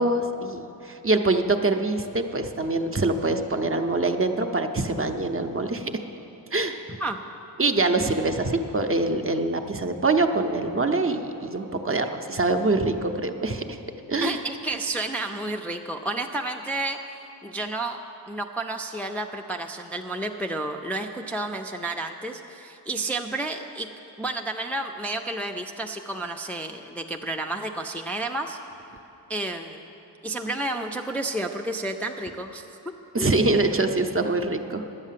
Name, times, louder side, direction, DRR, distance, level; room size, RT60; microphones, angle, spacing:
voice 1, 0.0-5.9 6.5-6.9 7.6-13.6 14.1-14.4 33.1-34.8, right 2 dB, 30° right, 5 dB, 0.7 m, -24 dB
voice 2, 14.2-17.0 17.4-18.0 18.3-23.9 24.2-28.6 29.3-29.9 30.2-32.6 33.2-33.4, right 2 dB, 5° left, 3 dB, 0.4 m, -31 dB
10.5 x 8.2 x 7.4 m, 3.0 s
wide cardioid pair, 75°, 43 cm